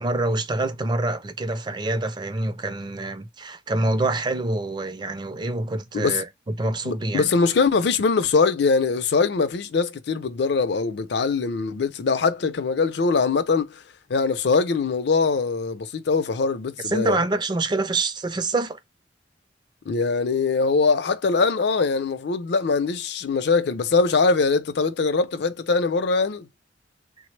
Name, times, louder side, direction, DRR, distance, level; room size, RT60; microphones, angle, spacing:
voice 1, 0.0-7.3 16.8-18.8, right 2 dB, 25° right, 0.4 m, -26 dB
voice 2, 6.8-13.8 14.1-17.2 19.9-26.5, left 4 dB, 70° left, 0.5 m, -22 dB
3.3 x 2.0 x 3.1 m
head